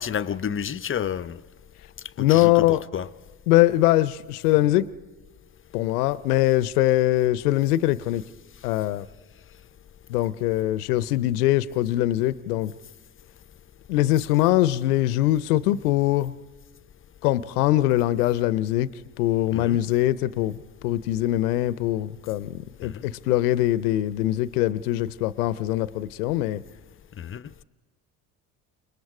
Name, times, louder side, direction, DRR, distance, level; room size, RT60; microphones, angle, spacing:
voice 1, 0.0-1.4 2.2-3.1 19.5-19.8 22.8-23.1 27.2-27.5, left 8 dB, 30° left, 0.6 m, -30 dB
voice 2, 2.2-2.8 3.5-4.9 5.7-8.2 8.6-9.1 10.1-12.7 13.9-16.3 17.2-18.9 19.2-20.6 20.8-26.6, left 15 dB, 85° left, 0.7 m, -22 dB
29.5 x 20.5 x 4.8 m
hypercardioid pair, 65°, 44 cm